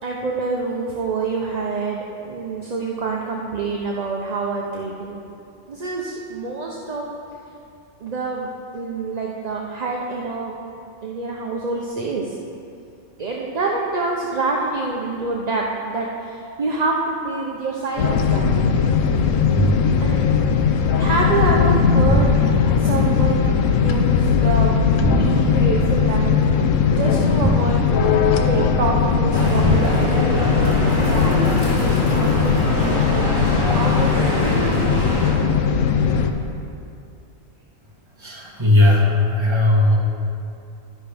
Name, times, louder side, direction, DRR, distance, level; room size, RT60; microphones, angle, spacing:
voice 1, 0.0-5.2 5.7-7.0 8.0-8.5 8.7-10.6 11.0-12.3 13.2-18.6 20.0-20.2 20.9-24.8 25.0-26.4 27.0-28.0 28.4-30.0 30.6-31.4 31.8-33.3 33.6-34.9, right 3 dB, 40° right, -2 dB, 0.7 m, -26 dB
sound 1, 18.0-36.3, left 6 dB, 80° left, 1.0 m, -18 dB
sound 2, 19.6-20.1 22.1-22.8 25.0-25.6 27.4-28.2 29.6-30.2, right 1 dB, ahead, 0.5 m, -22 dB
sound 3, 29.3-35.3, equal, 40° left, 2.4 m, -25 dB
voice 2, 38.2-40.0, left 2 dB, 20° right, -2 dB, 1.5 m, -17 dB
12.5 x 10.5 x 3.5 m, 2.6 s
omnidirectional pair, 1.3 m